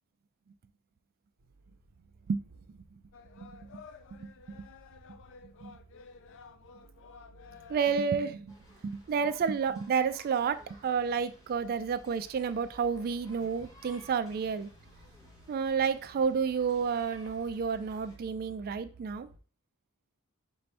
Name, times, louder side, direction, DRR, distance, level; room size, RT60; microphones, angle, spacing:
sound 1, 1.4-19.4, right 3 dB, 80° right, 0.7 m, -58 dB
sound 2, 3.1-8.5, left 5 dB, 60° left, 0.4 m, -53 dB
voice 1, 3.3-3.8 4.1-4.3 5.4-5.8 7.7-8.6 8.8-14.7 15.5-19.3, right 6 dB, 45° right, 11 dB, 0.3 m, -30 dB
sound 3, 8.5-18.2, right 1 dB, 15° left, 0.9 m, -57 dB
5.4 x 2.6 x 3.2 m, 0.38 s
head